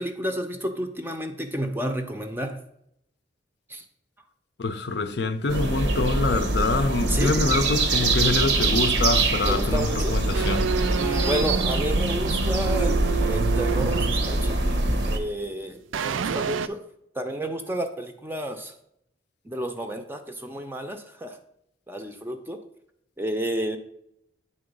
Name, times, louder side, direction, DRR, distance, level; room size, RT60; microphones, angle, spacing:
voice 1, 0.0-2.6 3.7-3.8 7.1-7.3 9.5-10.2 11.0-14.6 15.1-16.9 17.1-18.7 19.4-21.4 21.9-22.6 23.2-23.8, right 1 dB, 10° right, 0.5 m, -31 dB
voice 2, 4.6-10.8, left 3 dB, 60° left, 0.5 m, -25 dB
sound 1, 5.5-15.2, right 2 dB, 70° right, 0.9 m, -24 dB
sound 2, 10.3-15.5 15.9-16.7, right 6 dB, 90° right, 0.4 m, -29 dB
8.8 x 3.8 x 5.2 m
head